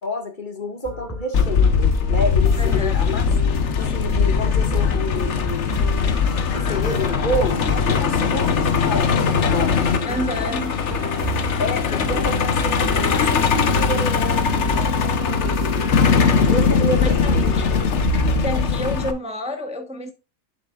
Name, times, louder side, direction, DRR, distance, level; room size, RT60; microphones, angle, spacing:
voice 1, 0.0-1.8 2.1-3.2 3.8-5.9 6.5-8.6 8.8-10.5 10.9-11.0 11.6-16.1 16.5-17.2, left 1 dB, 35° left, 1.9 m, -29 dB
sound 1, 0.8-18.6, right 1 dB, 10° left, 1.6 m, -31 dB
Truck, 1.3-19.1, left 6 dB, 55° left, 1.2 m, -20 dB
voice 2, 2.6-3.0 10.0-10.8 17.0-17.8 18.4-20.1, equal, 5° right, 0.9 m, -30 dB
8.2 x 7.4 x 2.4 m
omnidirectional pair, 1.5 m